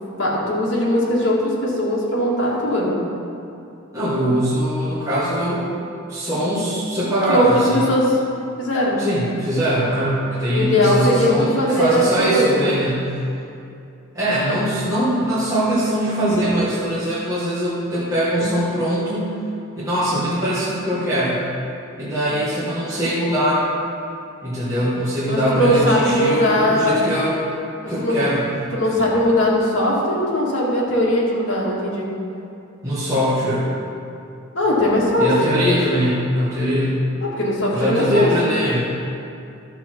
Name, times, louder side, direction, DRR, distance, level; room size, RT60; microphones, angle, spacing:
voice 1, 0.2-2.9 7.3-8.2 8.6-9.0 10.5-12.7 16.6-16.7 18.3-18.5 25.3-27.0 27.8-28.2 28.7-32.1 34.5-35.3 37.2-38.3, equal, 60° left, -5 dB, 2.4 m, -19 dB
voice 2, 3.9-5.7 6.1-7.8 9.0-13.1 14.1-19.4 19.8-21.4 22.0-23.6 24.4-27.4 27.9-28.4 32.8-33.7 35.2-37.0 37.7-38.8, equal, 15° right, -10 dB, 1.8 m, -21 dB
12.0 x 7.0 x 4.6 m, 2.6 s
head